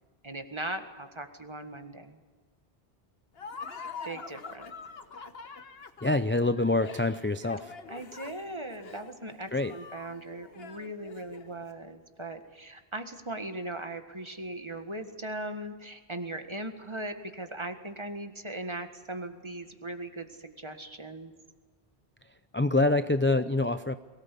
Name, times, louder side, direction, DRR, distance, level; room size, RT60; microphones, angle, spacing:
voice 1, 0.2-2.2 4.0-4.7 7.9-21.3, right 1 dB, 30° right, 7 dB, 1.7 m, -39 dB
Laughter, 3.3-11.6, left 5 dB, 70° left, 1.5 m, -45 dB
voice 2, 6.0-7.7 9.5-9.7 22.5-24.0, left 2 dB, 15° left, 10 dB, 0.4 m, -26 dB
23.0 x 18.0 x 8.4 m, 1.4 s
omnidirectional pair, 1.1 m